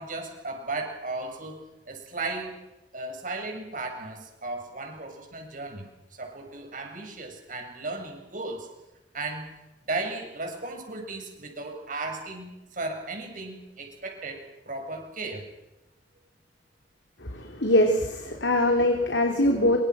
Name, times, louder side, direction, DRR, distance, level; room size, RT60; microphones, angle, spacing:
voice 1, 0.0-1.6 1.9-2.6 2.9-5.9 6.2-8.7 9.1-9.5 9.9-15.5, right 2 dB, 50° right, 3 dB, 7.2 m, -35 dB
voice 2, 17.3-19.8, left 1 dB, 90° left, 2 dB, 3.9 m, -22 dB
27.0 x 24.5 x 6.2 m, 0.99 s
head